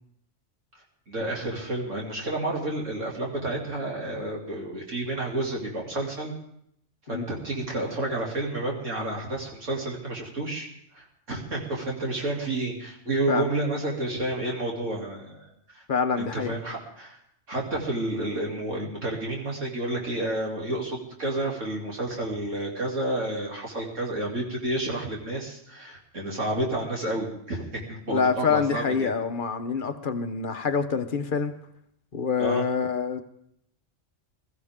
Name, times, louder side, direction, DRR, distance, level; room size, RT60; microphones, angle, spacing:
voice 1, 0.7-6.3 7.1-10.7 10.9-15.8 16.2-17.2 17.5-29.1 32.4-32.7, right 2 dB, 75° right, -2 dB, 3.2 m, -30 dB
voice 2, 15.9-16.6 28.1-31.5 32.1-33.2, left 5 dB, 45° left, 9 dB, 1.0 m, -26 dB
22.0 x 14.0 x 3.6 m, 0.73 s
omnidirectional pair, 1.3 m